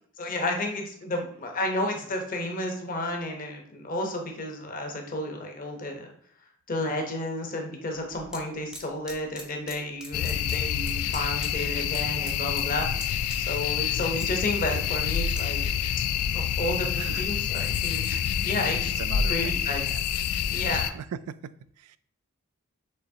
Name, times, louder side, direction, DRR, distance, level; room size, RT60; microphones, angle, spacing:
voice 1, 0.2-6.1 6.7-12.9 13.4-15.7 16.3-19.0 19.3-19.8 20.5-20.9, left 1 dB, 40° left, 3 dB, 0.8 m, -32 dB
sound 1, 7.9-8.4 8.7-9.8 10.0-11.5 11.8-12.0 12.3-12.7 13.0-13.7 14.0-15.4 15.9-16.1, equal, 5° right, 0.6 m, -42 dB
sound 2, 10.1-20.9, left 8 dB, 85° left, 0.3 m, -27 dB
voice 2, 18.1-18.4 19.0-20.0 20.7-22.0, right 8 dB, 85° right, 16 dB, 0.3 m, -40 dB
6.6 x 3.0 x 2.7 m, 0.63 s
head